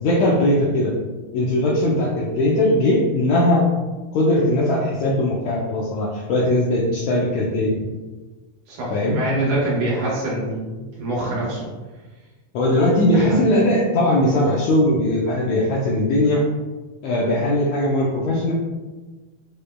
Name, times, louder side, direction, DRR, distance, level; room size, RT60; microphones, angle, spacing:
voice 1, 0.0-0.9 1.3-3.7 4.1-7.7 8.9-9.2 12.5-16.4 17.0-18.5, left 1 dB, 80° left, -4 dB, 1.6 m, -19 dB
voice 2, 8.7-11.6 13.1-13.4, right 1 dB, 75° right, -6 dB, 2.5 m, -25 dB
6.6 x 3.2 x 2.2 m, 1.3 s
omnidirectional pair, 3.7 m